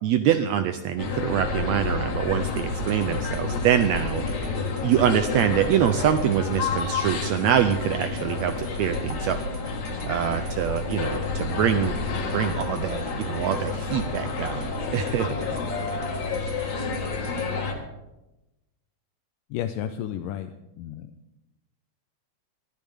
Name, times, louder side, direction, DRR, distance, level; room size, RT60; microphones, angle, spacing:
voice 1, 0.0-4.2 4.8-9.4 10.1-12.0 12.3-14.7 14.9-15.3, right 10 dB, 85° right, 9 dB, 1.6 m, -24 dB
sound 1, 1.0-17.7, left 4 dB, 60° left, 2.9 m, -29 dB
sound 2, 2.6-17.5, right 2 dB, 65° right, 0.9 m, -46 dB
voice 2, 19.5-21.1, left 10 dB, 90° left, 7 dB, 2.3 m, -32 dB
21.5 x 12.0 x 3.5 m, 0.96 s
omnidirectional pair, 3.7 m